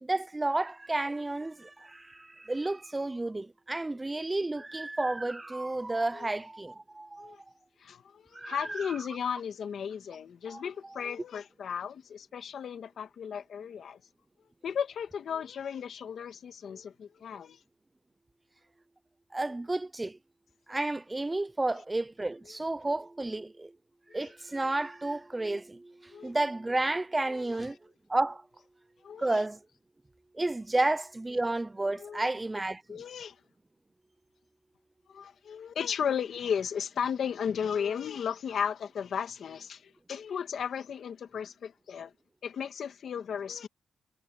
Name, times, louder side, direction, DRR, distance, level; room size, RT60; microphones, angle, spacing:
voice 1, 0.0-7.4 8.3-8.9 10.5-10.6 19.3-20.2 20.7-23.7 24.1-27.8 28.1-28.4 29.2-29.6 30.3-33.0, right 2 dB, 20° right, 0.4 m, -31 dB
voice 2, 7.8-14.0 14.6-17.6 24.1-24.3 26.1-26.3 27.3-27.5 29.0-29.4 32.0-32.3 32.9-33.4 35.1-42.1 42.4-43.7, left 7 dB, 75° left, 2.1 m, -35 dB
cardioid pair, 100°, 0 cm